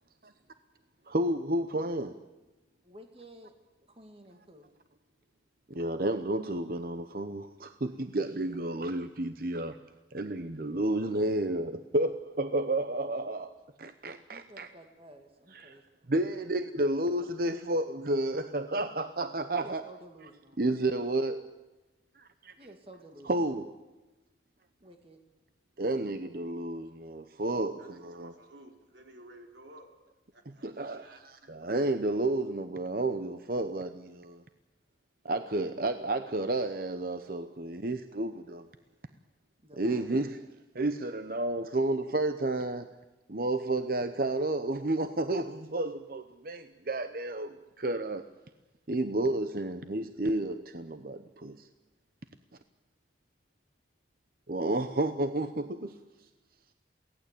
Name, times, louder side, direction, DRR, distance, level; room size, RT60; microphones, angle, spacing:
voice 1, 0.0-1.2 2.5-3.0 3.9-6.0 13.5-14.5 15.6-16.1 21.8-22.7 24.0-24.9 25.4-25.9 27.8-31.7 34.3-35.2 38.8-39.5 52.8-53.2 53.7-54.5 56.7-56.8, right 1 dB, 80° right, 3 dB, 3.8 m, -61 dB
voice 2, 1.1-2.2 5.7-9.8 10.1-14.7 15.5-15.8 16.1-19.8 20.6-21.4 22.2-22.5 23.3-23.7 25.8-28.3 30.6-31.1 31.5-34.4 35.2-38.7 39.8-40.4 40.7-42.9 43.3-48.2 48.9-51.7 54.5-56.0, right 2 dB, 50° right, 10 dB, 0.9 m, -31 dB
voice 3, 2.8-3.5 3.9-4.7 14.3-15.8 16.2-16.4 19.5-20.6 22.6-23.3 24.8-25.2 39.6-40.1, right 1 dB, 30° right, 5 dB, 2.2 m, -52 dB
23.0 x 17.5 x 8.5 m, 1.1 s
head